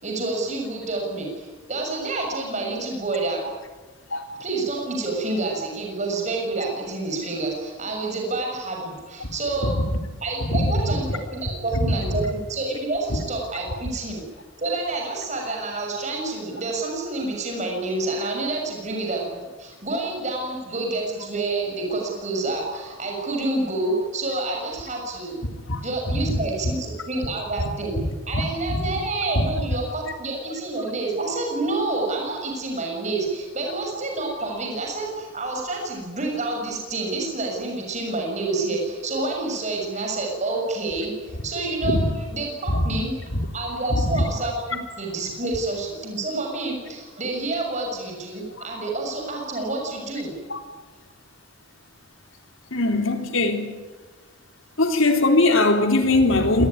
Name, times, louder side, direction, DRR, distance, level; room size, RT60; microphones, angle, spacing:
voice 1, 0.0-3.4 4.4-9.7 10.2-11.0 11.3-14.2 14.6-25.4 25.8-27.9 28.2-42.0 42.3-43.1 43.5-50.3, right 2 dB, 35° right, 1 dB, 6.8 m, -28 dB
voice 2, 10.4-10.9 11.7-11.9 25.7-25.8 26.2-26.4 28.3-28.4 28.7-28.9 29.4-29.5 41.8-42.1 42.7-42.8 43.9-44.2 48.6-48.7 50.5-50.6 52.7-53.7 54.8-56.7, left 2 dB, 75° left, 5 dB, 3.7 m, -21 dB
26.5 x 21.0 x 9.8 m, 1.3 s
head